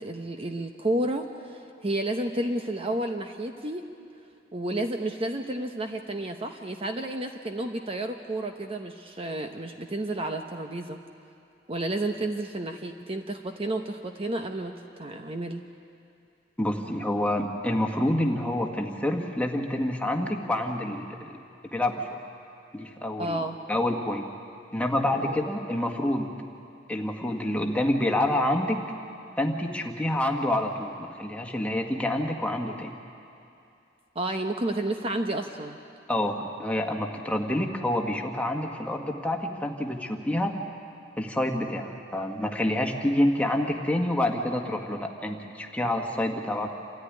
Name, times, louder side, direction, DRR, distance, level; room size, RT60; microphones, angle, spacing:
voice 1, 0.0-3.9 4.5-11.0 11.7-15.6 23.2-23.6 25.1-25.4 34.1-35.8, right 1 dB, 30° right, 5 dB, 0.9 m, -31 dB
voice 2, 16.6-21.4 21.7-22.1 22.7-23.4 23.7-24.2 24.7-26.3 26.9-28.8 29.4-32.9 36.1-40.6 41.2-46.7, left 1 dB, 5° left, 2 dB, 1.7 m, -27 dB
28.0 x 14.0 x 9.9 m, 2.6 s
head